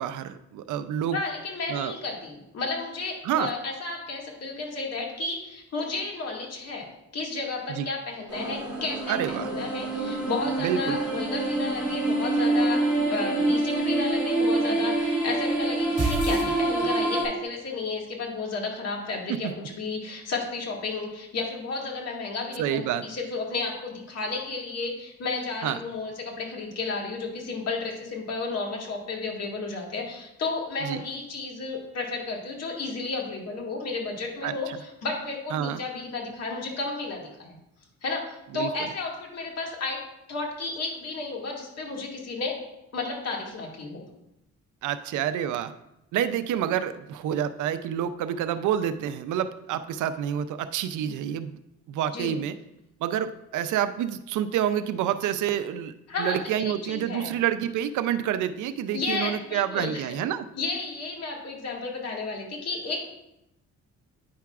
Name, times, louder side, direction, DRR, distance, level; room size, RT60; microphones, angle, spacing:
voice 1, 0.0-1.2 1.7-1.9 3.2-3.5 7.8-7.9 9.1-9.5 10.6-11.0 19.3-19.5 22.6-23.1 25.6-25.8 30.8-31.0 34.4-34.8 35.5-35.8 38.5-38.9 44.8-45.7 46.1-51.6 51.9-52.6 53.0-60.5, right 10 dB, 80° right, 12 dB, 0.5 m, -28 dB
voice 2, 1.1-6.9 7.1-12.8 13.1-19.5 19.8-37.6 38.0-40.0 40.3-42.6 42.9-44.1 52.1-52.4 56.1-57.3 58.9-60.1 60.6-63.0, left 3 dB, 55° left, -1 dB, 2.0 m, -32 dB
sound 1, 8.3-17.2, right 2 dB, 5° right, 2.5 m, -26 dB
sound 2, 16.0-17.2, right 3 dB, 25° right, 2.5 m, -29 dB
9.3 x 5.7 x 2.4 m, 0.85 s
cardioid pair, 90°, 30 cm